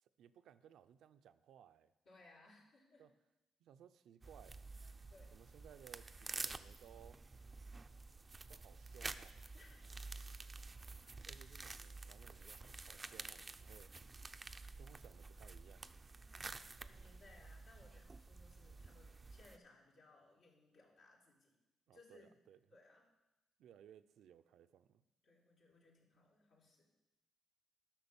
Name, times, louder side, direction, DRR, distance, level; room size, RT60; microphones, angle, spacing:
voice 1, 0.0-1.9 3.0-3.1 3.6-4.6 5.3-7.2 8.5-9.4 11.2-13.9 14.8-15.9 21.9-22.6 23.6-25.0, right 9 dB, 75° right, 12 dB, 0.5 m, -62 dB
voice 2, 2.1-3.1 5.1-5.3 9.5-10.2 11.3-11.4 16.3-21.6 21.9-22.3 22.7-23.1 25.2-26.9, left 2 dB, 70° left, -4 dB, 3.5 m, -65 dB
sound 1, 4.2-19.6, right 3 dB, 25° right, 0.5 m, -50 dB
12.0 x 6.0 x 7.1 m, 0.99 s
cardioid pair, 90°, 0 cm